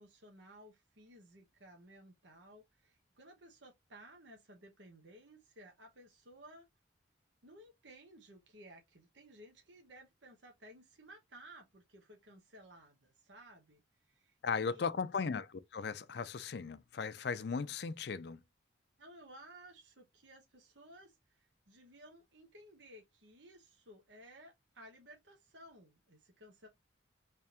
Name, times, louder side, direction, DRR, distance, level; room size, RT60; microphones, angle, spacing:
voice 1, 0.0-6.7 7.4-14.9 19.0-26.7, right 1 dB, 70° right, 1.1 m, -57 dB
voice 2, 14.4-18.4, left 5 dB, 55° left, 0.4 m, -37 dB
3.4 x 3.3 x 2.8 m
head